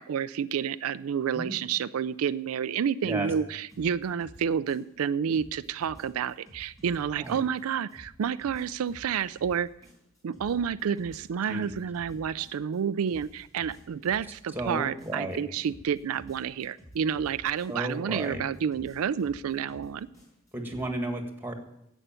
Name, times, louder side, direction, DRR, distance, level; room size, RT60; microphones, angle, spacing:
voice 1, 0.0-9.7 10.2-20.1, right 7 dB, 85° right, 14 dB, 0.4 m, -29 dB
sound 1, 3.7-5.0 5.3-7.6 7.9-12.8 13.1-15.4 15.6-17.9 18.2-20.8, equal, 15° left, 6.2 m, -52 dB
voice 2, 14.6-15.4 17.7-18.4 20.5-21.5, right 1 dB, 10° right, 4 dB, 1.8 m, -33 dB
11.0 x 8.2 x 8.9 m, 0.81 s
head